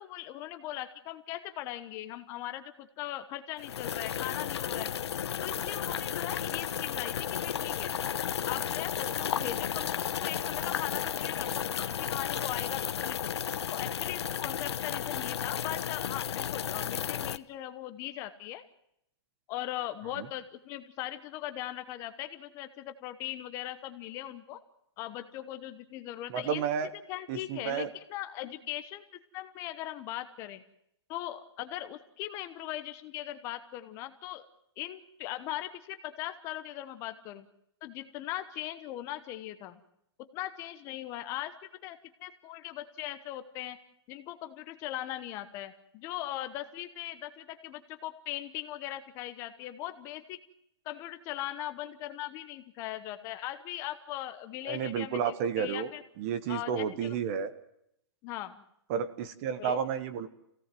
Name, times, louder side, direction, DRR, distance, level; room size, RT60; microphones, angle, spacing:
voice 1, 0.0-4.9 5.4-7.9 8.4-13.2 13.6-18.6 19.5-24.6 25.0-26.6 27.1-29.0 29.3-30.6 31.1-34.4 34.8-37.5 37.8-39.8 40.2-41.5 41.8-43.8 44.1-50.4 50.8-56.0 56.5-57.1 58.2-58.6 59.6-59.8, left 14 dB, 20° left, 10 dB, 1.1 m, -39 dB
sound 1, 3.6-17.4, left 9 dB, 80° left, 1.0 m, -33 dB
voice 2, 26.3-26.9 27.3-27.9 54.7-55.9 56.2-57.5 58.9-60.3, right 7 dB, 30° right, 12 dB, 1.4 m, -31 dB
26.0 x 17.0 x 7.7 m, 0.78 s
hypercardioid pair, 170°, 14 cm